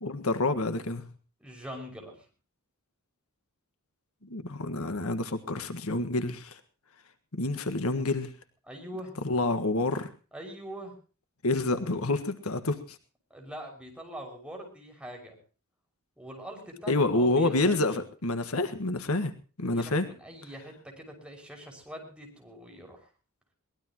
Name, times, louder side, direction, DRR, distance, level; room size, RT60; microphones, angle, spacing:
voice 1, 0.0-1.1 4.3-6.6 7.3-8.3 9.2-10.1 11.4-13.0 16.9-19.3 19.6-20.1, left 2 dB, 80° left, 10 dB, 1.6 m, -28 dB
voice 2, 1.4-2.2 8.7-9.1 10.3-10.9 13.3-15.4 16.2-18.0 19.7-23.1, equal, 5° right, 1 dB, 5.9 m, -43 dB
22.5 x 19.0 x 3.0 m, 0.37 s
head